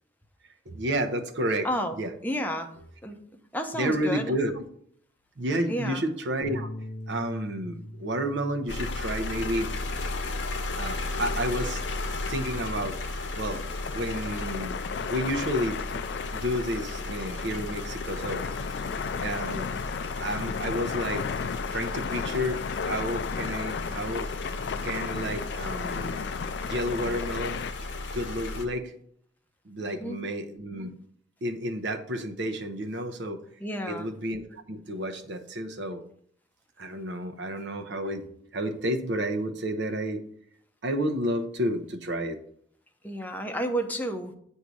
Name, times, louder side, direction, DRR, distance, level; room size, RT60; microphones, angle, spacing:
voice 1, 0.7-1.7 1.9-2.1 3.8-4.6 5.4-6.7 7.1-9.7 10.8-11.8 12.3-13.6 13.9-16.0 16.3-18.4 19.2-19.7 20.2-21.3 21.7-24.3 24.8-26.3 26.6-27.6 28.1-28.9 29.7-30.9 31.4-33.4 33.9-36.0 36.8-40.2 40.8-42.4, equal, 70° right, 6 dB, 0.7 m, -31 dB
voice 2, 1.6-2.0 2.2-2.7 3.0-3.2 3.5-4.3 5.7-6.0 29.8-30.2 33.6-34.1 43.0-44.3, equal, 10° left, 4 dB, 0.7 m, -31 dB
sound 1, 6.4-12.7, left 1 dB, 50° left, 0.8 m, -44 dB
sound 2, 8.7-28.7, left 2 dB, 85° left, 0.8 m, -35 dB
sound 3, 9.4-27.7, left 6 dB, 65° left, 0.3 m, -36 dB
8.1 x 2.7 x 6.1 m, 0.66 s
head